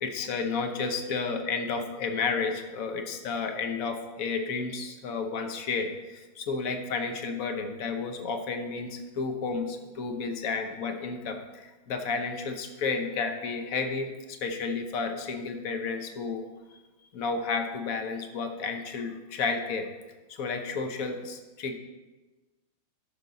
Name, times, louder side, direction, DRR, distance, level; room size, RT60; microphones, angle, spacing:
voice 1, 0.0-16.4 17.1-19.9 20.3-21.8, left 4 dB, 55° left, 5 dB, 1.0 m, -32 dB
13.0 x 6.0 x 4.0 m, 1.2 s
omnidirectional pair, 2.4 m